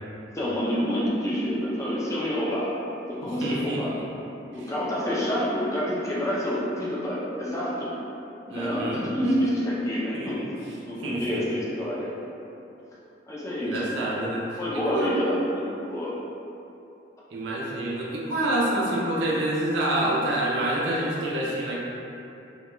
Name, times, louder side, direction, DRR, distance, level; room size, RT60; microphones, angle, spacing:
voice 1, 0.3-2.7 3.1-3.9 4.5-7.9 8.5-10.4 10.9-12.1 13.3-13.7 14.6-15.6 15.9-16.1, equal, 15° left, -7 dB, 0.4 m, -28 dB
voice 2, 3.2-4.0 4.6-4.7 8.5-9.6 10.1-10.5 11.0-11.4 13.6-15.1 17.3-21.8, right 1 dB, 90° right, -4 dB, 0.5 m, -27 dB
2.2 x 2.2 x 2.9 m, 2.8 s
head